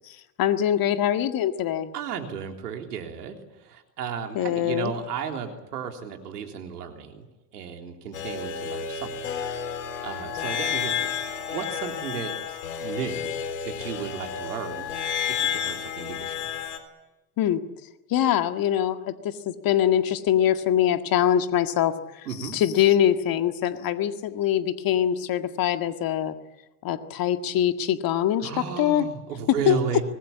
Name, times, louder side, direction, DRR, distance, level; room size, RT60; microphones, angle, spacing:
voice 1, 0.4-1.9 4.4-4.9 17.4-17.6 18.1-26.3 26.8-28.5 28.8-29.1 29.7-29.8, left 10 dB, 50° left, 8 dB, 1.9 m, -23 dB
voice 2, 1.9-7.3 7.5-9.1 10.0-13.4 13.6-14.9 15.3-16.5 22.3-22.6 28.4-30.0, right 7 dB, 85° right, 4 dB, 3.6 m, -34 dB
sound 1, 8.1-16.8, left 8 dB, 80° left, 3.8 m, -31 dB
25.0 x 19.5 x 8.7 m, 1.0 s
hypercardioid pair, 80°, 46 cm